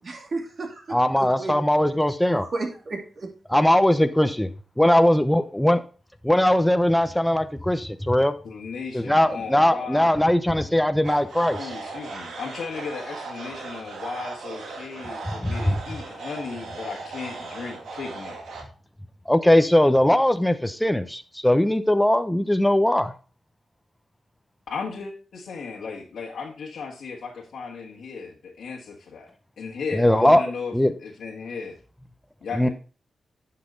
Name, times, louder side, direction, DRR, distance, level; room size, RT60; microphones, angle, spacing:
voice 1, 0.0-1.5 2.3-3.3, right 3 dB, 50° right, 2.8 m, -33 dB
voice 2, 0.9-2.5 3.5-4.5 4.8-5.8 6.2-8.3 8.9-11.7 15.4-15.5 19.3-23.1 29.9-30.4 30.7-30.9 32.6-32.7, left 1 dB, 5° left, 0.8 m, -20 dB
voice 3, 8.4-10.2 11.6-18.4 24.7-29.3 29.6-30.7 31.0-31.8 32.4-32.7, left 5 dB, 85° left, 1.7 m, -35 dB
sound 1, 11.0-18.6, right 3 dB, 85° right, 2.0 m, -37 dB
10.5 x 5.9 x 3.8 m
cardioid pair, 70°, 0 cm